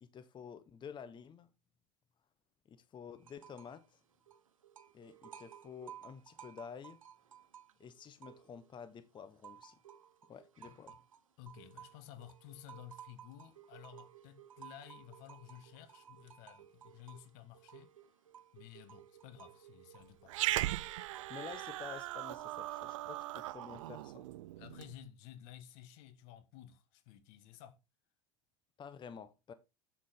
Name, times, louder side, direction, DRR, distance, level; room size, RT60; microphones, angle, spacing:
voice 1, 0.0-1.5 2.7-4.0 4.9-7.0 7.8-9.8 10.3-10.9 21.3-24.3 28.8-29.5, left 7 dB, 30° left, 0.8 m, -50 dB
sound 1, 3.2-3.8 4.1-8.8 9.2-23.0, right 9 dB, 90° right, 1.0 m, -57 dB
voice 2, 10.6-11.0 11.4-17.9 18.5-20.3 24.6-27.8, left 11 dB, 60° left, 1.3 m, -54 dB
Growling, 20.3-24.9, right 16 dB, 70° right, 0.5 m, -38 dB
7.4 x 7.4 x 3.6 m
hypercardioid pair, 85°, 17 cm